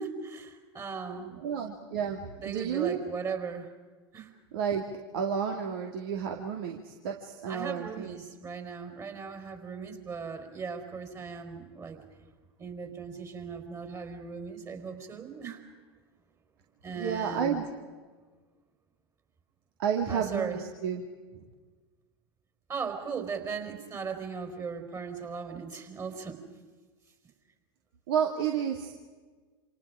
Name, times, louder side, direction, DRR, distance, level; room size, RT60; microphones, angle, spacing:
voice 1, 0.0-1.4 2.4-3.7 4.1-4.3 7.5-12.0 12.6-15.6 16.8-17.6 20.1-20.6 22.7-26.4, right 5 dB, 25° right, 5 dB, 4.5 m, -38 dB
voice 2, 1.4-3.1 4.5-4.9 5.1-8.2 17.0-17.7 19.8-21.0 21.3-21.4 28.1-28.9, right 7 dB, 60° right, 3 dB, 2.4 m, -31 dB
28.5 x 27.5 x 5.0 m, 1.4 s
figure-of-eight pair, 90°, 14 cm